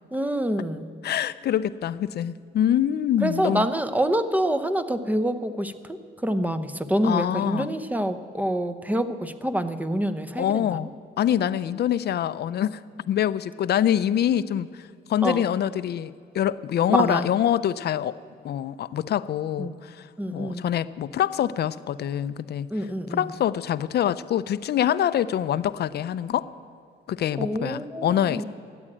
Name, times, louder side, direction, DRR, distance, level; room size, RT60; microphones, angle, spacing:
voice 1, 0.1-0.9 3.2-10.9 15.2-15.5 16.9-17.3 19.6-19.7 20.2-20.6 22.7-23.3 27.4-28.4, right 1 dB, 10° right, 10 dB, 0.7 m, -26 dB
voice 2, 1.0-3.7 7.0-7.7 10.4-10.9 11.2-12.8 13.1-18.2 18.4-22.7 23.1-26.5 27.1-28.4, left 10 dB, 55° left, 15 dB, 0.5 m, -25 dB
13.5 x 8.8 x 8.6 m, 2.1 s
cardioid pair, 90°, 20 cm